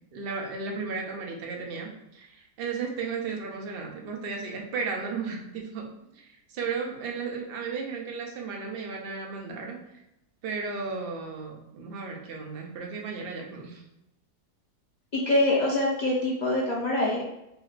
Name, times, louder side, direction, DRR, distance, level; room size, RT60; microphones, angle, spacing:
voice 1, 0.1-5.9 6.1-9.8 10.4-13.8, right 4 dB, 55° right, 1 dB, 0.6 m, -34 dB
voice 2, 15.1-17.2, left 1 dB, 50° left, -4 dB, 0.5 m, -24 dB
4.5 x 3.1 x 2.4 m, 0.88 s
omnidirectional pair, 1.8 m